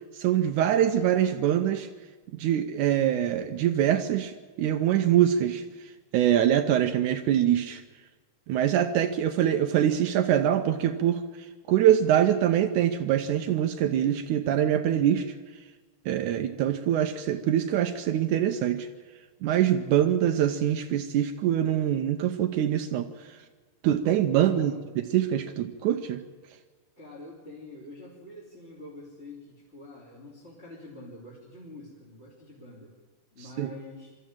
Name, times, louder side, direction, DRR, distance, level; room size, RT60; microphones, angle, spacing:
voice 1, 0.1-1.9 2.3-5.6 6.1-7.8 8.5-11.2 11.7-15.3 16.1-18.9 19.4-23.4 23.8-24.7 25.1-26.2 33.6-33.7, right 10 dB, 75° right, 7 dB, 2.1 m, -24 dB
voice 2, 24.3-24.9 27.0-32.9 33.3-34.2, left 2 dB, 20° left, -4 dB, 3.1 m, -46 dB
23.0 x 13.5 x 8.9 m, 1.4 s
omnidirectional pair, 3.7 m